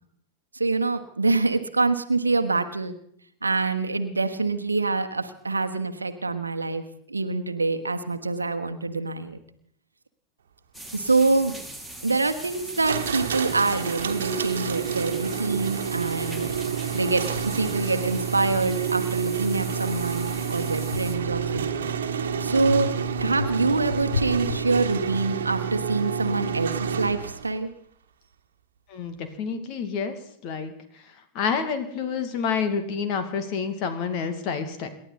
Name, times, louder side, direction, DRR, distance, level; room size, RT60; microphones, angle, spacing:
voice 1, 0.5-2.9 3.4-9.4 10.9-11.6 12.0-16.5 16.9-21.7 22.0-22.9 23.2-27.7, right 3 dB, 80° right, 7 dB, 1.2 m, -25 dB
sound 1, 10.7-21.2, right 1 dB, 5° left, 2.8 m, -41 dB
sound 2, 12.8-27.5, right 7 dB, 65° right, 1.5 m, -29 dB
sound 3, 16.6-16.7 17.3-19.2 19.7-22.0 22.6-25.4, left 5 dB, 75° left, 0.8 m, -36 dB
voice 2, 28.9-30.1 30.4-30.7 31.3-34.9, left 6 dB, 40° left, 8 dB, 2.3 m, -28 dB
28.0 x 12.0 x 4.1 m, 0.69 s
figure-of-eight pair, 90°, 0 cm